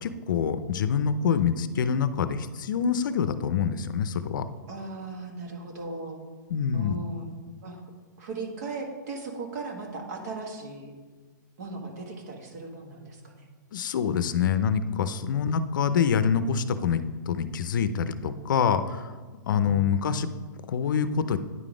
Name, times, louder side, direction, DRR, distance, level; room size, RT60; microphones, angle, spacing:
voice 1, 0.0-4.5 6.5-6.9 13.7-19.1 19.5-20.3 20.7-21.4, left 7 dB, 75° left, 12 dB, 0.5 m, -26 dB
voice 2, 4.7-6.2 6.7-7.4 7.6-7.8 8.2-10.9 11.6-13.5 15.4-15.5 19.6-19.9, right 2 dB, 55° right, 2 dB, 1.5 m, -37 dB
9.7 x 3.9 x 4.9 m, 1.4 s
hypercardioid pair, 160°, 11 cm